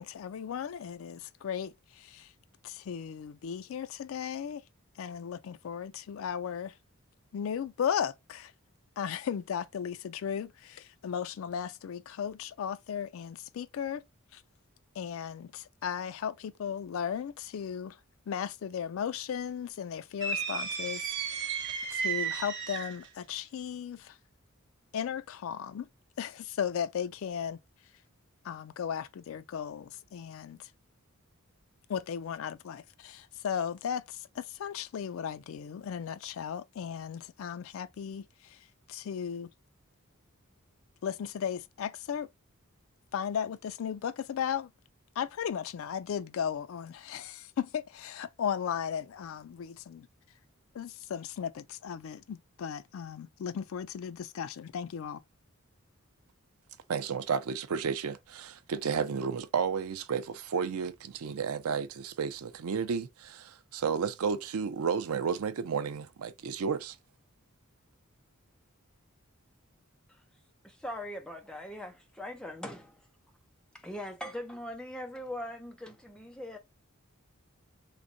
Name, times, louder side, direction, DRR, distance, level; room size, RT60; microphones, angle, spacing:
voice 1, 0.0-2.3 2.6-4.6 5.0-6.7 7.3-8.5 9.0-14.0 14.3-14.4 15.0-18.0 18.3-21.6 21.9-24.2 24.9-25.9 26.2-27.6 28.4-30.7 31.9-38.6 38.9-39.5 41.0-42.3 43.1-44.7 45.2-50.1 50.7-55.2, left 8 dB, 65° left, 0.3 m, -36 dB
sound 1, 20.2-23.1, right 6 dB, 55° right, 0.8 m, -33 dB
voice 2, 56.9-67.0, right 6 dB, 80° right, 0.5 m, -32 dB
voice 3, 70.6-73.0 73.7-76.6, left 1 dB, 5° left, 0.6 m, -41 dB
3.5 x 3.1 x 2.6 m
head